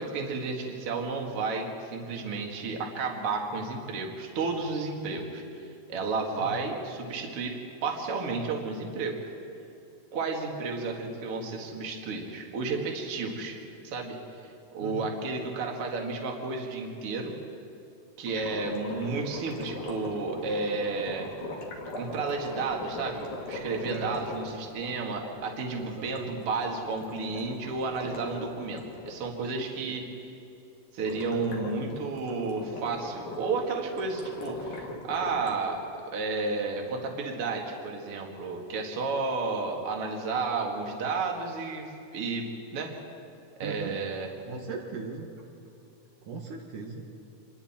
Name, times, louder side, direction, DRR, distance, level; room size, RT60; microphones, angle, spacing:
voice 1, 0.0-9.3 10.1-13.6 13.8-14.2 14.7-17.4 18.2-21.3 22.0-30.0 30.9-43.0 43.6-44.3, right 4 dB, 45° right, 1 dB, 2.7 m, -32 dB
sound 1, 18.3-29.2 31.0-35.5, left 2 dB, 90° left, 4.2 m, -40 dB
voice 2, 25.8-26.3 29.6-30.0 43.6-44.0 44.5-45.3 46.3-47.1, right 4 dB, 70° right, 1 dB, 2.9 m, -39 dB
27.0 x 21.5 x 4.4 m, 2.6 s
omnidirectional pair, 3.9 m